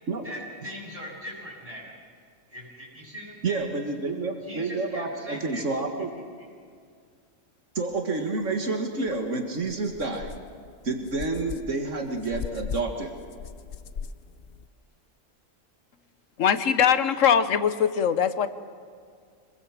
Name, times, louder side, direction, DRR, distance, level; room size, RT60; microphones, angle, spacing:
voice 1, 0.2-1.9 2.5-3.7 4.4-5.6, equal, 25° right, -4 dB, 8.1 m, -40 dB
voice 2, 3.4-6.1 7.8-10.3 10.8-13.1, right 3 dB, 75° right, 4 dB, 2.1 m, -29 dB
sound 1, 9.1-9.2 9.6-14.7, left 6 dB, 55° left, 0.9 m, -39 dB
voice 3, 16.4-18.5, left 8 dB, 85° left, 12 dB, 1.4 m, -21 dB
26.0 x 21.0 x 7.4 m, 2.2 s
omnidirectional pair, 1.3 m